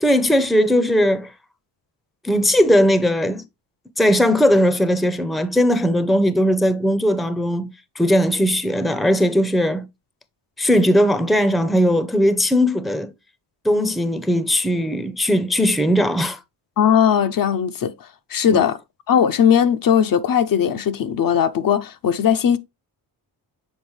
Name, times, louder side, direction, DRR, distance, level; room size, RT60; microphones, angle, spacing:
voice 1, 0.0-1.3 2.2-3.4 4.0-7.7 8.0-9.8 10.6-13.1 13.6-16.4 18.5-18.6, equal, ahead, 0.6 m, -18 dB
voice 2, 16.8-18.8 19.1-22.6, left 8 dB, 50° left, 0.6 m, -18 dB
7.2 x 4.2 x 3.1 m
cardioid pair, 100°, 43 cm